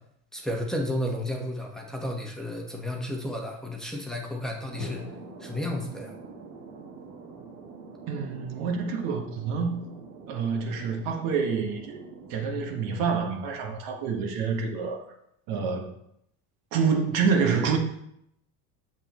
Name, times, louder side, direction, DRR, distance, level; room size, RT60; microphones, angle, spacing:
voice 1, 0.3-5.0 5.4-6.1, left 1 dB, ahead, 1.3 m, -32 dB
Thunder, 4.7-14.0, right 5 dB, 50° right, 1.6 m, -46 dB
Drum, 4.8-8.6, left 3 dB, 50° left, 1.4 m, -44 dB
voice 2, 8.1-9.8 10.3-12.0 12.3-15.0 15.5-15.9 16.7-17.8, right 5 dB, 65° right, 1.5 m, -27 dB
7.8 x 7.1 x 3.1 m
supercardioid pair, 115°, 35 cm